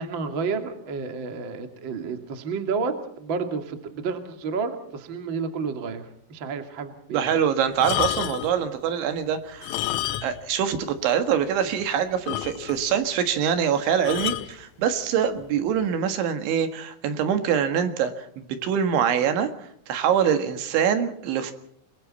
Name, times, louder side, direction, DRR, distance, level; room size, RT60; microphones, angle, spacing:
voice 1, 0.0-7.3, right 5 dB, 45° right, 7 dB, 1.6 m, -30 dB
voice 2, 7.1-9.8 10.2-19.5 19.9-21.5, right 8 dB, 70° right, 9 dB, 3.8 m, -24 dB
sound 1, 7.7-8.6 9.5-10.5 10.8-10.9 11.4-11.5 11.8-11.9 12.3-12.9 14.1-14.5 15.4-15.6, left 15 dB, 80° left, 3.4 m, -29 dB
29.5 x 21.0 x 4.2 m, 0.68 s
omnidirectional pair, 5.9 m